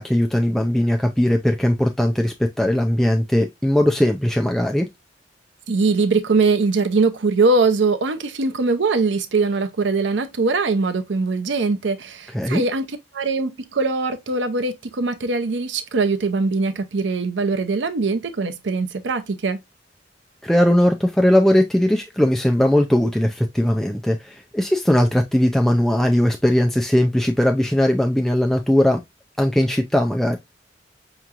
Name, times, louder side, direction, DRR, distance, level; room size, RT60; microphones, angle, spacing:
voice 1, 0.0-4.9 12.3-12.6 20.4-29.0 29.4-30.4, left 1 dB, ahead, 0.4 m, -19 dB
voice 2, 5.7-19.6, right 3 dB, 75° right, 0.6 m, -21 dB
5.6 x 3.0 x 2.4 m
head